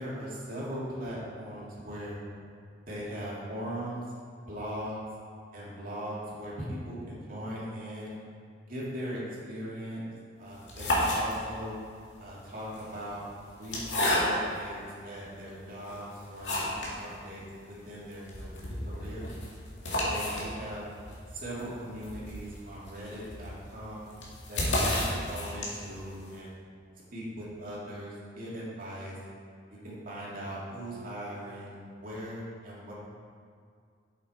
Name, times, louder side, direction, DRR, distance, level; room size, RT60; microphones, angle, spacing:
voice 1, 0.0-2.2 2.9-4.0 4.5-5.0 5.5-8.2 8.7-10.0 10.4-11.8 12.2-13.2 13.6-19.3 19.8-20.8 21.3-24.1 24.5-26.5 27.1-29.1 29.8-32.9, equal, 50° right, -6 dB, 2.6 m, -39 dB
sound 1, 10.5-11.7 12.6-14.6 15.3-15.4 15.8-17.0 17.3-17.4 17.7-17.8 18.1-26.0, left 1 dB, 85° left, 2.2 m, -32 dB
8.3 x 7.9 x 4.5 m, 2.2 s
head